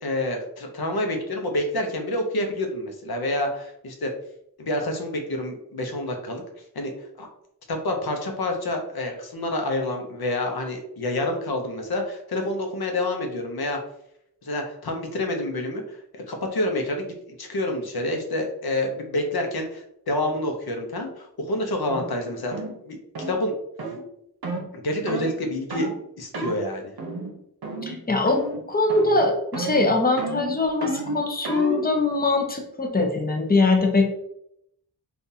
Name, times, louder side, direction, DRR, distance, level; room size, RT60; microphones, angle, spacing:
voice 1, 0.0-4.1 4.6-6.4 6.7-7.3 7.7-13.8 14.4-22.5 22.8-23.0 23.3-23.5 24.7-25.9 26.2-26.9, left 1 dB, 70° left, 3 dB, 0.7 m, -28 dB
sound 1, 21.9-22.1 22.5-22.7 23.1-23.4 23.8-24.0 24.4-24.7 25.1-25.3 25.7-26.0 26.3-26.6 27.0-27.3 27.6-28.0 28.3-28.6 28.9-29.2 29.5-31.9, right 2 dB, 65° right, 0.8 m, -31 dB
voice 2, 27.8-28.4 28.7-34.1, left 3 dB, 25° left, 3 dB, 0.7 m, -22 dB
3.8 x 2.5 x 2.7 m, 0.75 s
wide cardioid pair, 70°, 39 cm